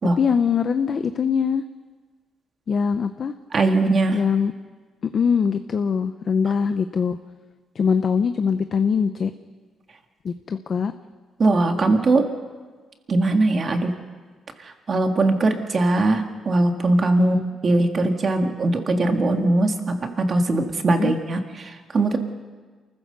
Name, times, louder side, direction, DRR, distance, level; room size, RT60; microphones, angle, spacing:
voice 1, 0.2-1.6 2.7-3.3 4.1-4.5 5.1-7.2 7.7-9.3 10.2-10.9 17.2-17.4 20.9-21.1, left 6 dB, 40° left, 9 dB, 0.6 m, -22 dB
voice 2, 3.5-4.2 11.4-12.3 13.1-14.0 14.6-17.4 17.6-22.2, right 2 dB, 35° right, 5 dB, 1.8 m, -20 dB
28.5 x 15.0 x 6.8 m, 1.4 s
cardioid pair, 160°, 0 cm